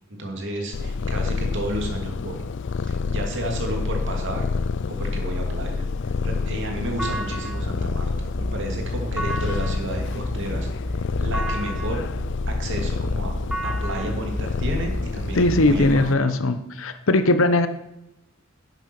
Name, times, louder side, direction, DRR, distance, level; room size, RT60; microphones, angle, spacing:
voice 1, 0.1-2.4 2.8-4.4 5.0-10.7 10.9-12.0 12.5-13.3 13.6-16.5, right 1 dB, 60° right, 2 dB, 2.7 m, -32 dB
Purr, 0.7-16.1, left 4 dB, 60° left, 0.4 m, -28 dB
sound 1, 7.0-15.7, equal, 5° right, 1.1 m, -31 dB
voice 2, 15.3-17.7, left 2 dB, 75° left, 10 dB, 1.0 m, -19 dB
11.0 x 8.0 x 6.1 m, 0.87 s
head